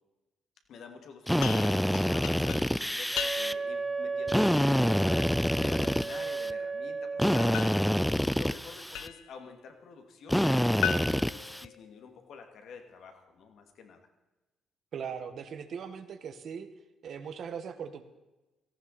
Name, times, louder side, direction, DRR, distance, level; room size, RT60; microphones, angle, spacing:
voice 1, 0.7-5.2 5.6-7.6 8.3-10.5 10.8-14.0, left 5 dB, 70° left, 5 dB, 2.5 m, -48 dB
Drill, 1.3-3.5 4.3-6.5 7.2-9.1 10.3-11.7, equal, ahead, 0.5 m, -27 dB
sound 1, 1.4-3.8 7.5-9.4 10.8-12.3, left 10 dB, 90° left, 0.9 m, -38 dB
Wind instrument woodwind instrument, 3.1-7.6, right 4 dB, 15° right, 1.9 m, -35 dB
voice 2, 14.9-16.7 17.0-18.0, right 7 dB, 60° right, 8 dB, 1.7 m, -39 dB
17.5 x 15.0 x 4.3 m, 1.1 s
cardioid pair, 90°, 0 cm